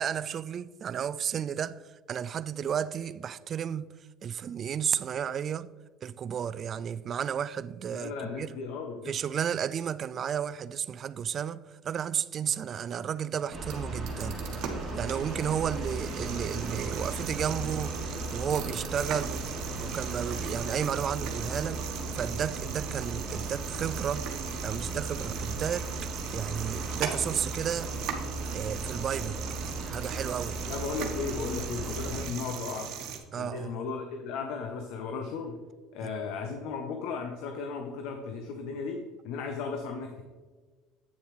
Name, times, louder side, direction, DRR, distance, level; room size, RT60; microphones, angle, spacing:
voice 1, 0.0-1.8 2.1-3.9 4.2-5.7 6.0-8.5 9.1-14.4 14.9-19.4 19.8-21.9 22.1-24.3 24.6-25.9 26.3-27.9 28.5-29.4 29.8-30.6 33.3-33.8 36.0-36.1, right 8 dB, 40° right, 0.3 m, -32 dB
voice 2, 7.9-9.1 30.7-32.9 33.4-35.6 35.9-40.2, left 5 dB, 70° left, 0.8 m, -35 dB
sound 1, 13.4-33.2, right 7 dB, 65° right, 1.3 m, -39 dB
sound 2, 13.5-32.2, right 2 dB, 10° right, 2.5 m, -37 dB
8.8 x 6.9 x 3.2 m
supercardioid pair, 100°, 0 cm